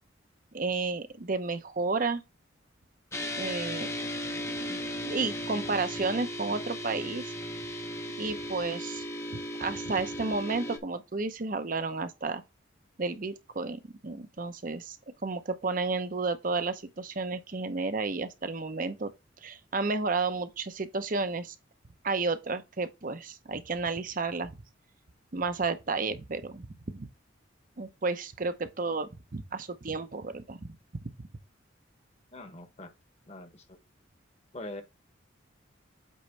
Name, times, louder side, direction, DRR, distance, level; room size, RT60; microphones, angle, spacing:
voice 1, 0.5-2.2 3.4-3.9 4.5-7.3 8.2-9.0 9.6-12.4 13.0-15.0 15.2-19.1 19.4-21.5 22.0-24.5 25.3-27.1 27.8-30.6, right 3 dB, 45° right, 0.7 m, -32 dB
sound 1, 3.1-10.8, equal, 15° left, 0.7 m, -36 dB
voice 2, 32.3-32.9 33.3-33.8 34.5-34.8, left 2 dB, 35° left, 1.2 m, -43 dB
8.4 x 3.1 x 4.5 m
head